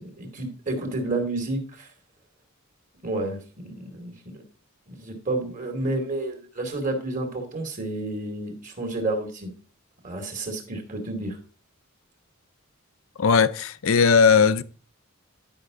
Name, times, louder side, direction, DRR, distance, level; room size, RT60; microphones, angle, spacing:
voice 1, 0.0-1.9 3.0-4.4 4.9-9.5 10.0-11.4, right 2 dB, 40° right, 2.6 m, -30 dB
voice 2, 13.2-14.6, left 5 dB, 75° left, 0.6 m, -18 dB
11.5 x 5.8 x 3.8 m
head